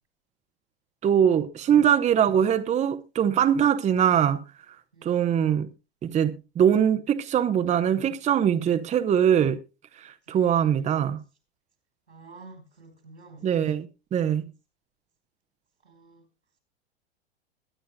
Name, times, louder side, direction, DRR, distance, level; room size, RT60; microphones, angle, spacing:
voice 1, 1.0-4.4 5.0-5.7 6.0-9.6 10.0-11.2 13.4-14.4, right 9 dB, 20° right, 0.8 m, -22 dB
voice 2, 5.0-5.4 10.3-10.6 12.1-13.5 15.9-16.2, right 3 dB, 90° right, 4.9 m, -49 dB
22.0 x 10.0 x 2.2 m
hypercardioid pair, 95°, 32 cm